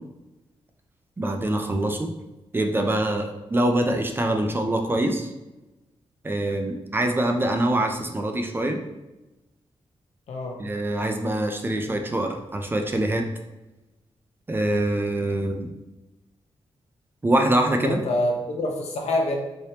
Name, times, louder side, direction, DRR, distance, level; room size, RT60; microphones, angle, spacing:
voice 1, 1.2-2.1 2.5-5.3 6.2-8.8 10.6-13.2 14.5-15.7 17.2-18.0, right 1 dB, 20° right, 4 dB, 0.3 m, -24 dB
voice 2, 10.3-10.6 17.8-19.3, left 1 dB, 80° left, 1 dB, 0.7 m, -26 dB
3.3 x 2.8 x 2.8 m, 1.0 s
wide cardioid pair, 130°, 11 cm